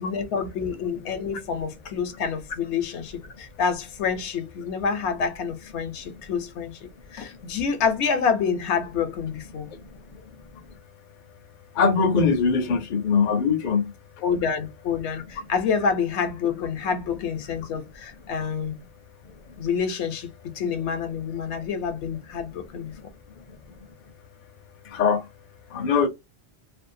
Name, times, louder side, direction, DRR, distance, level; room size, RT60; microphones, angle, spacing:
voice 1, 0.0-9.7 14.2-18.8 19.6-22.9, left 6 dB, 80° left, 0.9 m, -27 dB
voice 2, 11.8-13.8 24.9-25.2 25.7-26.1, left 5 dB, 55° left, 0.6 m, -21 dB
2.6 x 2.0 x 2.5 m
omnidirectional pair, 1.1 m